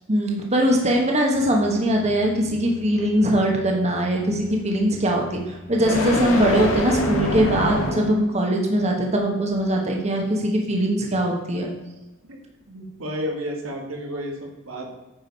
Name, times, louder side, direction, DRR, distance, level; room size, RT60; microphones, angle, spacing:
voice 1, 0.1-11.7, right 1 dB, 35° right, 0 dB, 1.3 m, -21 dB
sound 1, 1.3-8.3, left 1 dB, 80° left, 2.0 m, -28 dB
voice 2, 12.7-14.9, equal, 80° right, 1 dB, 1.8 m, -31 dB
9.7 x 5.1 x 5.4 m, 1.0 s
head